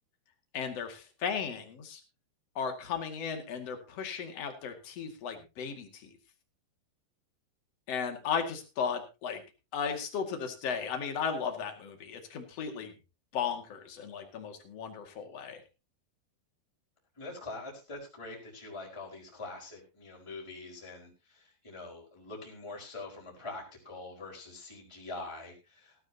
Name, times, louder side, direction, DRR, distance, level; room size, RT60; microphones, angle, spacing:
voice 1, 0.5-2.0 2.5-6.1 7.9-9.4 9.7-12.9 13.3-15.6, left 6 dB, 45° left, 5 dB, 2.6 m, -35 dB
voice 2, 17.2-26.0, left 2 dB, 5° left, -1 dB, 4.4 m, -44 dB
17.5 x 13.0 x 2.9 m, 0.29 s
omnidirectional pair, 5.3 m